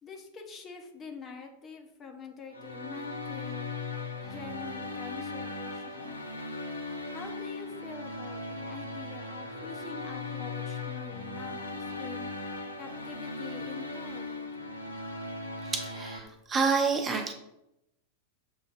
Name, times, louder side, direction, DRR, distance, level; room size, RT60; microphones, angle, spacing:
voice 1, 0.0-3.7 4.2-6.2 7.1-12.3 12.8-14.5, left 5 dB, 25° left, 2 dB, 0.6 m, -45 dB
sound 1, 2.5-16.2, left 3 dB, 80° left, 0.6 m, -38 dB
voice 2, 15.6-17.3, right 5 dB, 20° right, 3 dB, 0.7 m, -29 dB
6.9 x 2.6 x 2.4 m, 0.85 s
figure-of-eight pair, 90°, 0 cm